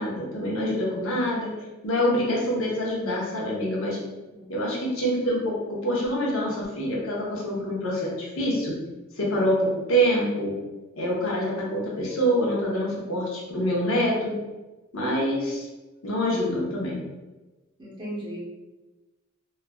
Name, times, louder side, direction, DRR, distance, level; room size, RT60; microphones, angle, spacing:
voice 1, 0.0-1.5 1.8-4.0 4.5-8.8 9.2-10.5 11.0-14.3 14.9-15.7 16.0-17.0, equal, 80° left, -4 dB, 0.8 m, -26 dB
voice 2, 17.8-18.4, equal, 20° right, -5 dB, 0.6 m, -36 dB
3.0 x 2.3 x 2.2 m, 1.1 s
head